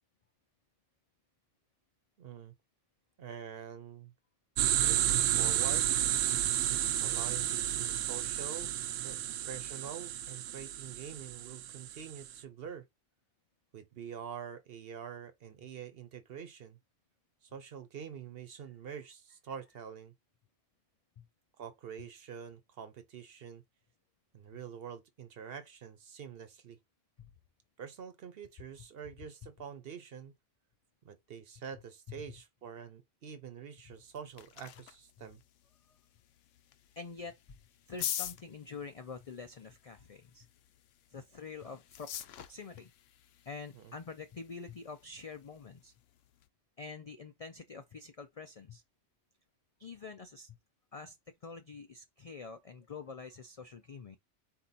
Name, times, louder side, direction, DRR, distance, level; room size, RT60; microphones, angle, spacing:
voice 1, 2.2-2.5 3.2-4.1 4.8-5.9 7.0-8.7 9.0-12.8 13.7-16.8 17.4-20.1 21.6-23.6 24.3-26.8 27.8-30.3 31.0-35.4 43.7-43.9, right 7 dB, 55° right, 0.9 m, -46 dB
sound 1, 4.6-12.3, right 11 dB, 85° right, 0.9 m, -31 dB
sound 2, 33.9-46.5, left 11 dB, 80° left, 0.9 m, -46 dB
voice 2, 37.0-37.4 37.9-40.5 41.1-42.9 43.5-45.9 46.8-48.8 49.8-50.6 50.9-51.2 51.4-54.2, left 4 dB, 60° left, 0.4 m, -46 dB
4.2 x 2.8 x 4.0 m
omnidirectional pair, 1.3 m